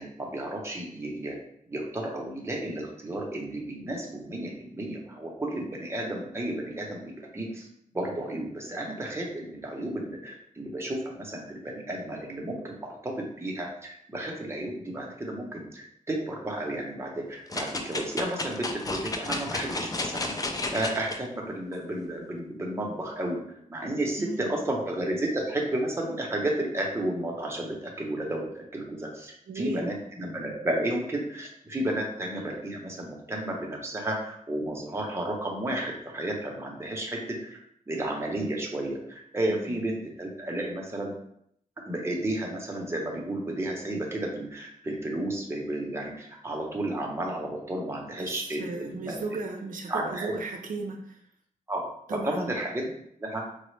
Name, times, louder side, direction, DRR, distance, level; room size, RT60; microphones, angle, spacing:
voice 1, 0.0-1.4 1.7-7.0 7.3-7.7 7.9-20.4 20.7-23.4 23.7-37.6 37.9-41.1 41.9-49.4 49.9-50.3 51.7-51.8 52.1-52.9 53.2-53.4, right 1 dB, 20° right, -1 dB, 0.7 m, -32 dB
sound 1, 17.5-21.2 21.7-21.8, left 2 dB, 25° left, 0.3 m, -32 dB
voice 2, 24.2-24.5 29.5-29.9 39.5-39.8 48.2-51.2 52.1-52.5, right 3 dB, 75° right, 3 dB, 0.4 m, -36 dB
4.0 x 2.0 x 3.1 m, 0.71 s
wide cardioid pair, 120°, 14 cm